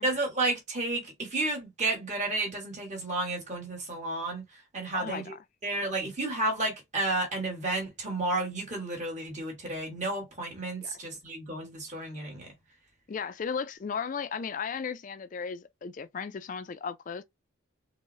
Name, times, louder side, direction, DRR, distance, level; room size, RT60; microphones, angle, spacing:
voice 1, 0.0-4.4 4.7-5.3 5.6-12.5, right 2 dB, 35° right, 1.3 m, -32 dB
voice 2, 4.9-5.4 10.8-10.9 13.1-17.2, left 6 dB, 40° left, 0.3 m, -35 dB
3.8 x 2.0 x 2.5 m
head